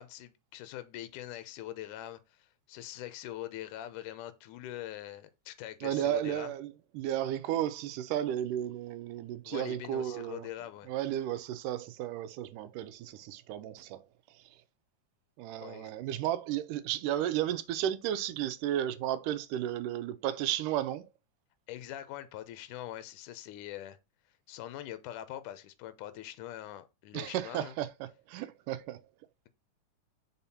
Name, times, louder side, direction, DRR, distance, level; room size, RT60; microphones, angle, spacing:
voice 1, 0.0-6.5 9.5-10.9 15.6-15.9 21.7-24.0 24.5-27.8, left 13 dB, 80° left, 2.2 m, -43 dB
voice 2, 5.8-10.5 10.9-14.0 15.4-21.1 27.1-27.9 28.3-29.0, right 12 dB, 80° right, 2.1 m, -33 dB
5.6 x 4.3 x 4.2 m
omnidirectional pair, 3.8 m